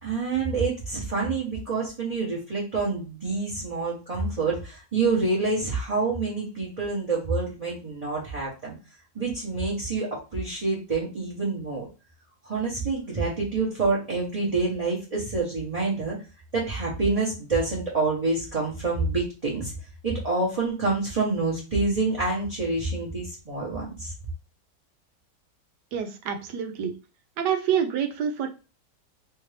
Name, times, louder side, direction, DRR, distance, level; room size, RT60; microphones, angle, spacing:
voice 1, 0.0-8.7 9.1-11.9 12.4-16.2 16.5-19.7 20.0-24.1, right 3 dB, 30° right, -6 dB, 0.8 m, -27 dB
voice 2, 25.9-26.9 27.4-28.6, right 8 dB, 80° right, 6 dB, 1.2 m, -27 dB
3.4 x 2.6 x 3.2 m, 0.32 s
omnidirectional pair, 1.8 m